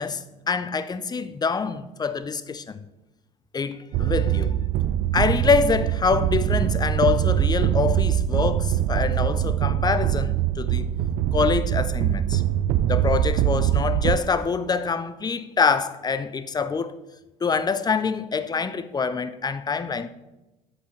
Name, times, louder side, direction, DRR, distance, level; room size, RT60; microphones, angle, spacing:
voice 1, 0.0-2.8 3.5-4.5 5.1-10.9 11.3-12.4 12.8-17.0 17.4-20.1, left 5 dB, 20° left, 0.5 m, -25 dB
sound 1, 3.9-14.2, right 11 dB, 50° right, 0.4 m, -23 dB
8.1 x 7.3 x 3.2 m
hypercardioid pair, 65°, 20 cm